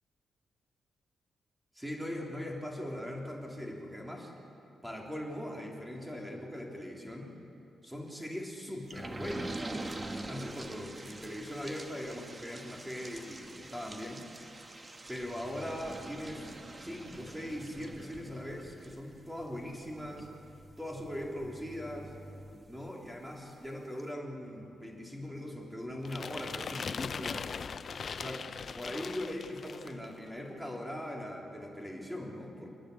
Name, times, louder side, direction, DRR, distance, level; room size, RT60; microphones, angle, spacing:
voice 1, 1.8-4.3 4.8-7.3 7.8-14.3 15.1-20.3 20.8-22.1 22.7-27.5 28.1-32.7, left 1 dB, 5° right, -1 dB, 3.5 m, -40 dB
sound 1, 8.9-23.2 23.6-23.7 24.0-24.1, right 2 dB, 25° right, 1.2 m, -45 dB
sound 2, 26.0-30.1, left 6 dB, 45° left, 0.5 m, -39 dB
29.0 x 10.5 x 9.7 m, 3.0 s
cardioid pair, 125°, 0 cm